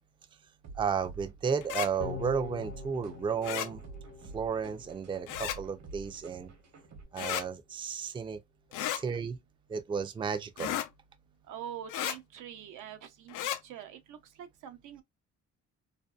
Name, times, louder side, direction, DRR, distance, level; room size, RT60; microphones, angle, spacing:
sound 1, 0.6-7.0, right 5 dB, 65° right, 1.0 m, -49 dB
voice 1, 0.8-3.8 4.3-6.5 7.1-8.4 9.0-9.4 9.7-10.8, right 6 dB, 15° right, 0.3 m, -33 dB
sound 2, 1.6-1.9 3.4-3.7 5.3-5.6 7.2-7.5 8.7-9.0 10.6-10.9 11.9-12.2 13.3-13.6, left 11 dB, 90° left, 0.5 m, -33 dB
sound 3, 2.0-5.3 5.7-5.8, left 6 dB, 65° left, 0.8 m, -44 dB
voice 2, 11.5-13.3 13.6-15.0, right 9 dB, 85° right, 0.6 m, -44 dB
2.6 x 2.1 x 2.3 m
cardioid pair, 90°, 30 cm